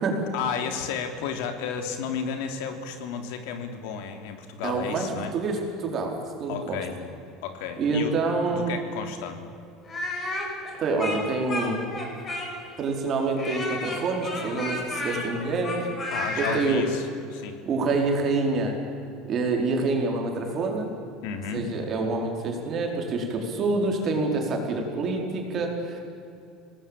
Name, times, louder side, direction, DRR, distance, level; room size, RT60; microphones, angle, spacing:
voice 1, 0.3-5.3 6.5-7.0 7.4-8.1 8.5-9.4 16.1-17.6 21.2-21.7, left 7 dB, 75° left, 6 dB, 3.2 m, -33 dB
voice 2, 4.6-6.8 7.8-8.7 10.8-11.8 12.8-15.9 16.4-16.8 17.6-18.8 19.3-20.9 21.5-26.0, right 3 dB, 35° right, 2 dB, 4.6 m, -27 dB
Speech, 9.9-12.8 13.4-16.6, left 2 dB, 25° left, 5.7 m, -32 dB
27.0 x 19.0 x 9.0 m, 2.6 s
cardioid pair, 160°, 0 cm